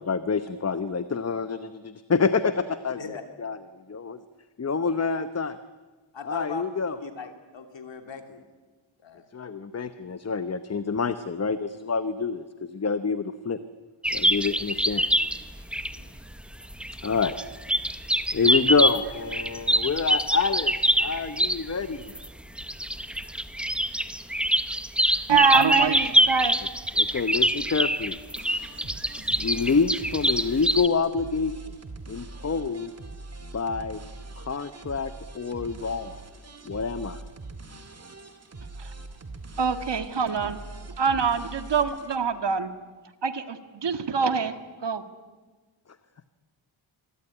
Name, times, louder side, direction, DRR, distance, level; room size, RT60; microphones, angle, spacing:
voice 1, 0.1-3.6 3.9-4.2 4.6-5.6 6.2-7.0 9.3-13.6 14.1-15.0 17.0-17.3 18.3-22.1 26.9-28.2 29.4-31.5 32.1-32.9 33.5-34.0 34.4-36.2 36.7-37.2, left 5 dB, 30° left, 12 dB, 0.9 m, -27 dB
voice 2, 6.1-6.6 7.0-8.4 9.0-9.2 15.9-16.1, left 6 dB, 65° left, 7 dB, 3.1 m, -39 dB
sound 1, 14.0-21.7 22.1-30.9, equal, ahead, 0.9 m, -25 dB
voice 3, 25.3-26.6 39.6-40.6 41.0-42.7 43.2-44.5 44.8-45.0, right 5 dB, 60° right, 10 dB, 1.8 m, -24 dB
sound 2, 28.4-42.2, right 2 dB, 30° right, 2.3 m, -42 dB
26.5 x 22.5 x 10.0 m, 1.3 s
wide cardioid pair, 170°, 48 cm